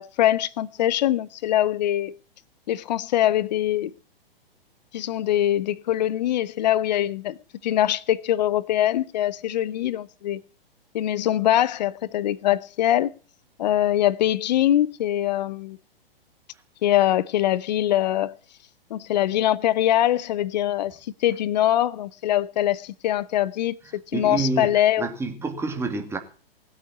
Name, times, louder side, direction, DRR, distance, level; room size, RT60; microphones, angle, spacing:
voice 1, 0.0-2.1 2.7-3.9 4.9-7.4 7.6-10.4 10.9-13.1 13.6-15.8 16.8-18.3 18.9-21.0 21.2-25.1, left 12 dB, 45° left, 0.9 m, -23 dB
voice 2, 23.9-26.2, right 3 dB, 10° right, 2.3 m, -29 dB
19.5 x 8.3 x 7.2 m
figure-of-eight pair, 115°, 30 cm